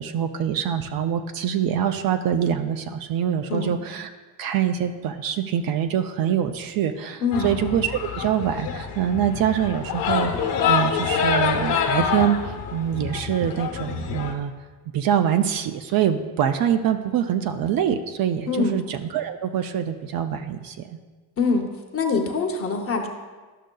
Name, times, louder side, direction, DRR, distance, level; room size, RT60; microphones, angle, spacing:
voice 1, 0.0-4.1 4.4-14.5 14.9-21.0, right 9 dB, 55° right, 8 dB, 0.5 m, -24 dB
sound 1, 7.3-14.3, left 6 dB, 70° left, 1.0 m, -26 dB
voice 2, 18.5-18.8 21.4-21.6 21.9-23.1, left 4 dB, 35° left, 3 dB, 0.7 m, -24 dB
11.5 x 6.3 x 2.2 m, 1.3 s
cardioid pair, 170°, 42 cm